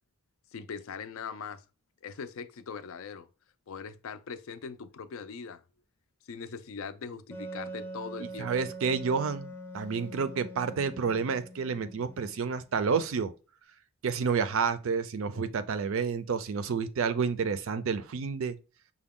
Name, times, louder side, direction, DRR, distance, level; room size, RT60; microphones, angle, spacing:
voice 1, 0.5-1.6 2.0-3.3 3.7-5.6 6.2-8.7, left 6 dB, 65° left, 0.4 m, -41 dB
Wind instrument woodwind instrument, 7.3-12.7, right 2 dB, 10° left, 0.6 m, -43 dB
voice 2, 8.2-13.3 14.0-18.6, right 5 dB, 60° right, 0.4 m, -30 dB
5.8 x 2.2 x 3.6 m
head